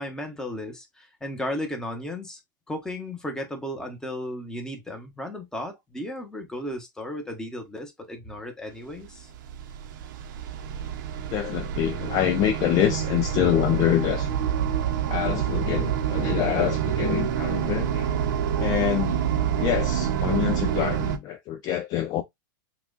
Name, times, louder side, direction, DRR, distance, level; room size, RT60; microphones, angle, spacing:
voice 1, 0.0-2.4 2.7-9.3, left 1 dB, 5° left, 1.1 m, -35 dB
sound 1, 9.0-21.2, right 9 dB, 60° right, 0.8 m, -27 dB
voice 2, 11.3-14.3 15.1-18.2 18.6-19.2 19.6-22.2, left 11 dB, 35° left, 0.5 m, -26 dB
5.9 x 2.4 x 2.4 m
supercardioid pair, 140°, 11 cm